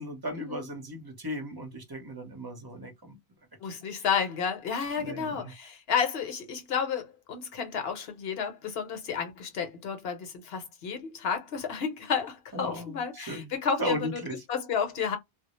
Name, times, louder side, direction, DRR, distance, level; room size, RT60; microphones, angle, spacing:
voice 1, 0.0-3.1 5.0-5.5 12.5-13.5 13.8-14.4, equal, 25° right, 0.7 m, -36 dB
voice 2, 3.6-14.2 14.5-15.2, left 6 dB, 65° left, 0.9 m, -31 dB
2.2 x 2.0 x 2.9 m
omnidirectional pair, 1.1 m